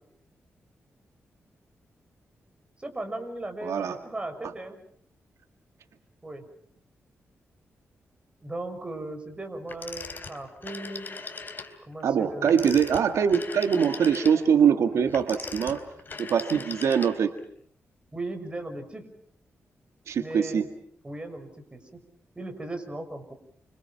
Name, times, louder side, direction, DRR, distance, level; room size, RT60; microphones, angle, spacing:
voice 1, 2.8-4.8 6.2-6.4 8.4-11.1 11.9-12.6 18.1-19.0 20.2-20.7 21.0-22.0 22.3-23.3, right 2 dB, 20° right, 6 dB, 6.1 m, -37 dB
voice 2, 3.6-4.0 12.0-15.8 16.2-17.3 20.1-20.7, right 7 dB, 85° right, 7 dB, 1.9 m, -23 dB
Telephone, 9.7-11.8 12.4-17.4, left 4 dB, 40° left, 3.6 m, -40 dB
29.5 x 26.0 x 5.9 m, 0.62 s
cardioid pair, 95°, 5 cm